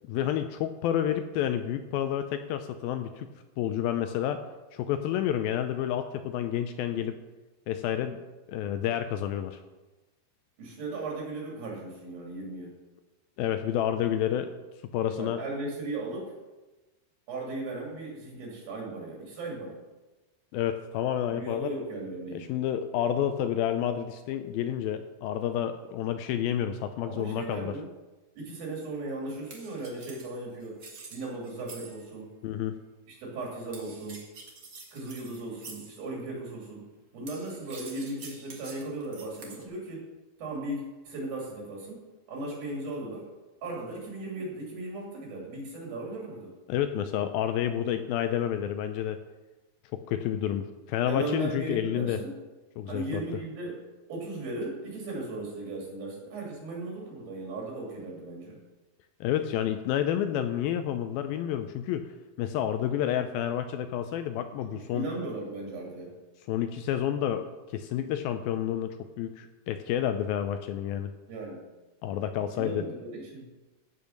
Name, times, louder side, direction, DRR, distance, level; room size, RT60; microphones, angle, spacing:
voice 1, 0.1-3.3 3.6-4.4 4.7-7.2 7.7-8.2 8.5-9.6 13.4-14.5 14.9-15.4 20.5-21.7 22.3-27.7 32.4-32.8 46.7-49.2 49.9-52.2 52.8-53.2 59.2-62.1 62.4-65.1 66.5-71.1 72.0-72.9, left 10 dB, 80° left, 8 dB, 2.2 m, -29 dB
voice 2, 10.6-12.8 15.1-16.3 17.3-19.8 21.3-22.5 27.1-27.9 28.4-30.8 31.1-32.4 33.1-34.2 34.9-36.9 37.1-40.0 40.4-42.0 42.3-43.3 43.6-46.5 51.1-52.3 52.9-53.8 54.1-58.6 64.9-66.1 71.3-71.6 72.6-73.5, right 2 dB, 65° right, -2 dB, 4.3 m, -37 dB
sound 1, 29.5-32.2 33.7-36.0 37.3-39.6, right 4 dB, 45° right, 1.5 m, -47 dB
15.5 x 5.5 x 6.4 m, 1.1 s
omnidirectional pair, 4.5 m